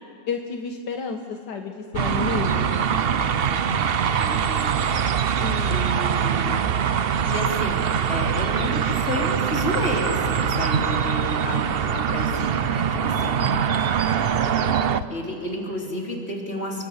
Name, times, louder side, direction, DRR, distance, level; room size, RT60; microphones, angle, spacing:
voice 1, 0.3-2.8 5.4-5.8 12.7-13.8, left 5 dB, 75° left, 4 dB, 1.8 m, -32 dB
sound 1, 1.9-2.0 2.4-2.5 2.9-3.0 3.4-3.5 3.9-4.0 4.4-4.5 4.9-5.0 5.4-5.5 6.0-6.1 6.5-6.6 6.9-7.0 7.5-7.6 8.0-9.0 9.9-11.0 12.0-12.1 12.3-12.7 12.9-13.0 14.0-14.1 14.3-14.4 14.7-14.8 15.0-15.1, left 12 dB, 60° left, 1.1 m, -37 dB
sound 2, 1.9-15.0, right 7 dB, 60° right, 0.6 m, -23 dB
voice 2, 2.7-5.4 5.7-6.6 7.2-13.4 15.1-16.8, equal, 35° left, -1 dB, 3.8 m, -31 dB
29.5 x 24.0 x 7.2 m, 2.4 s
omnidirectional pair, 1.9 m